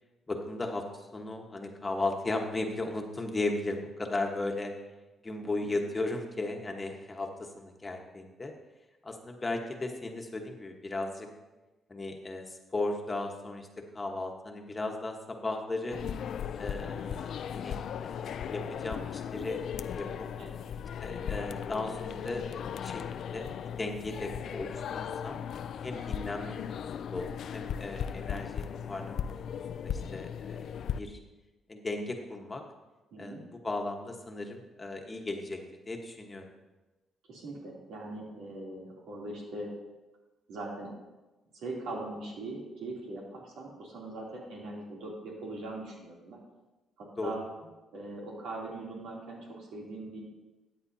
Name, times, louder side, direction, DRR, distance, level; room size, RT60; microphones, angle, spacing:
voice 1, 0.3-4.7 5.2-8.5 9.0-11.3 11.9-13.7 13.9-16.0 16.6-19.6 19.9-20.3 21.0-23.5 23.8-25.4 25.8-26.8 27.1-31.2 31.7-32.6 33.2-35.6 35.9-36.5 47.2-47.3, left 2 dB, 25° left, 3 dB, 1.3 m, -36 dB
sound 1, 15.9-31.0, left 8 dB, 65° left, 0.4 m, -37 dB
voice 2, 33.1-33.4 37.3-39.7 40.5-40.9 41.5-46.4 47.0-47.4 47.9-50.2, right 2 dB, 80° right, -3 dB, 2.9 m, -41 dB
13.5 x 8.8 x 2.8 m, 1.1 s
cardioid pair, 90°, 0 cm